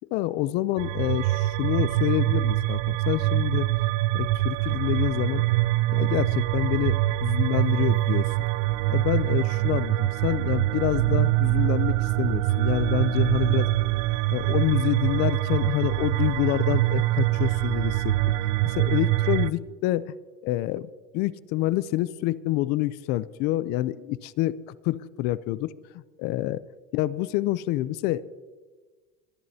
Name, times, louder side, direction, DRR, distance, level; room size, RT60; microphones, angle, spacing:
voice 1, 0.1-3.7 4.1-5.4 5.9-8.3 8.9-13.7 14.3-18.2 18.6-20.1 20.4-26.6 26.9-28.2, left 15 dB, 55° left, 18 dB, 0.5 m, -27 dB
sound 1, 0.8-19.5, right 17 dB, 70° right, 0.4 m, -24 dB
23.0 x 11.0 x 2.8 m, 1.3 s
supercardioid pair, 135°, 20 cm